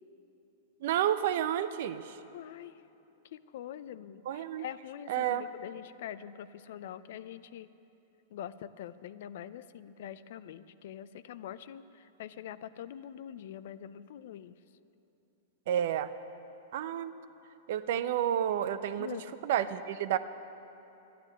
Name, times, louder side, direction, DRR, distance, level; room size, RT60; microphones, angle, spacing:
voice 1, 0.8-2.0 4.3-4.6 5.1-5.5 15.7-16.1 16.7-17.1 17.7-19.1 19.4-20.2, right 10 dB, 65° right, 12 dB, 0.6 m, -30 dB
voice 2, 2.3-2.7 3.3-7.7 8.3-14.5 19.0-19.2, left 10 dB, 65° left, 14 dB, 0.5 m, -44 dB
12.0 x 9.3 x 9.9 m, 3.0 s
hypercardioid pair, 120°, 0 cm